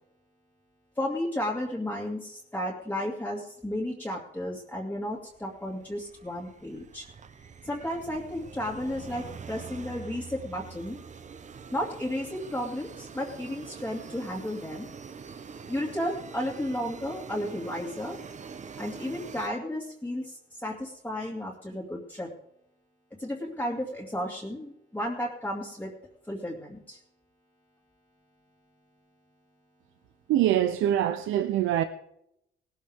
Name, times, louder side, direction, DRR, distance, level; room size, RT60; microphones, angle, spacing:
voice 1, 1.0-7.1 7.6-11.0 11.7-14.9 15.7-18.2 18.8-22.3 23.2-25.9 26.3-27.0, left 1 dB, 10° left, 2.4 m, -33 dB
sound 1, 5.3-19.5, right 6 dB, 35° right, 0.9 m, -44 dB
voice 2, 30.3-31.8, right 12 dB, 90° right, 0.7 m, -24 dB
18.5 x 13.5 x 3.6 m
cardioid pair, 90°, 20 cm